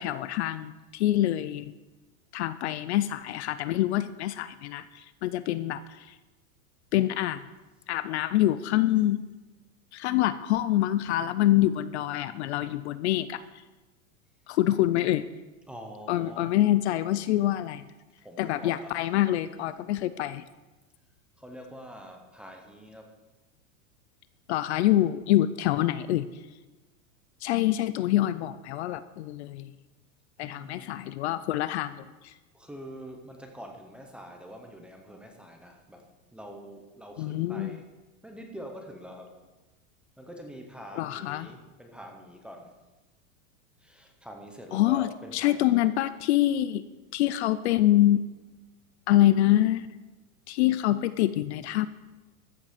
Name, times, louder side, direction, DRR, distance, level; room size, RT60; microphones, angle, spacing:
voice 1, 0.0-1.7 2.3-6.2 6.9-7.4 7.9-9.2 9.9-13.4 14.5-15.3 16.1-17.8 18.4-20.4 24.5-26.3 27.4-29.7 30.4-32.3 37.2-37.8 41.0-41.5 44.7-46.9 47.1-48.3 49.1-49.9 50.5-51.9, left 14 dB, 50° left, 15 dB, 0.5 m, -25 dB
voice 2, 15.7-16.6 18.2-18.9 21.4-23.1 30.4-31.2 32.5-37.9 38.2-39.4 40.2-42.8 43.8-45.9, equal, ahead, 2 dB, 0.6 m, -45 dB
14.0 x 7.8 x 5.0 m, 1.2 s
supercardioid pair, 165°, 43 cm